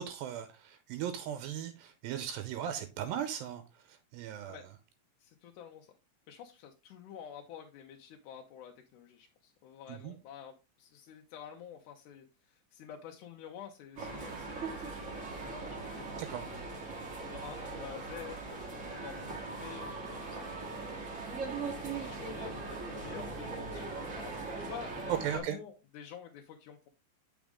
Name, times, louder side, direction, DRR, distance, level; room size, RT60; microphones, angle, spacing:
voice 1, 0.0-3.6 3.9-4.6 9.9-10.1 16.1-16.5 25.1-25.6, right 10 dB, 85° right, 2.4 m, -37 dB
voice 2, 5.2-5.9 6.3-16.6 17.2-21.1 21.5-26.9, left 8 dB, 75° left, 1.9 m, -49 dB
sound 1, 14.0-25.4, right 3 dB, 50° right, 0.8 m, -40 dB
7.2 x 5.0 x 3.6 m
omnidirectional pair, 4.2 m